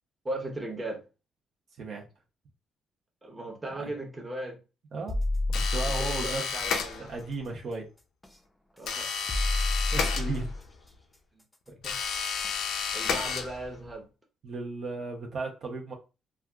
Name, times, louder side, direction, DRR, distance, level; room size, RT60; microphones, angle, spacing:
voice 1, 0.2-1.0 3.2-4.6 6.0-7.1 8.8-9.1 11.7-12.0 12.9-14.1, right 1 dB, 20° right, 0.9 m, -37 dB
sound 1, 5.1-6.4 8.2-8.3 9.3-10.6 12.4-12.5 13.0-13.1, left 2 dB, 10° left, 0.5 m, -29 dB
sound 2, 5.5-7.3 8.8-10.8 11.8-13.9, left 5 dB, 80° left, 0.4 m, -32 dB
voice 2, 5.5-6.4 7.1-7.9 9.9-10.6 14.4-15.9, right 3 dB, 60° right, 0.7 m, -35 dB
3.3 x 2.4 x 2.3 m
cardioid pair, 90°, 0 cm